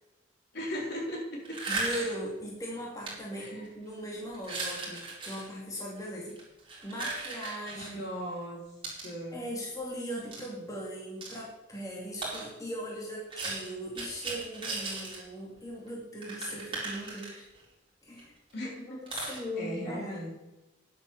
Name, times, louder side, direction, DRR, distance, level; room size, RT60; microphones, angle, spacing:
voice 1, 0.5-1.6 3.4-3.6 8.0-8.6 9.0-9.4 18.5-20.3, equal, 55° left, -2 dB, 4.6 m, -38 dB
sound 1, 1.4-2.2 3.0-3.1 3.6-3.9 4.3-5.5 6.3-7.9 8.8-9.1 10.3-10.5 11.2-11.4 12.2-12.5 13.3-15.2 15.6-15.7 15.9-16.0 16.2-17.6 18.2-18.3 18.5-18.6 19.1-19.4, right 3 dB, 25° right, 4.6 m, -37 dB
voice 2, 1.7-6.4 6.8-8.1 9.3-17.5 18.0-18.3 18.6-20.3, equal, 20° left, -4 dB, 2.6 m, -39 dB
10.5 x 8.6 x 7.2 m, 1.0 s
head